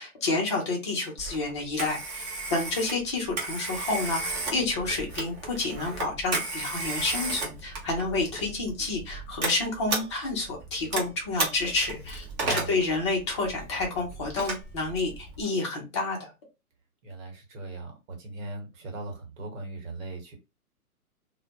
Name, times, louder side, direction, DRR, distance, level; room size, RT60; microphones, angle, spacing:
voice 1, 0.0-16.3, left 3 dB, 20° left, 0.4 m, -29 dB
Telephone, 1.2-15.4, right 3 dB, 30° right, 0.7 m, -35 dB
voice 2, 12.4-12.8 17.0-20.4, right 2 dB, 60° right, 1.2 m, -39 dB
2.1 x 2.1 x 2.7 m
hypercardioid pair, 130°, 46 cm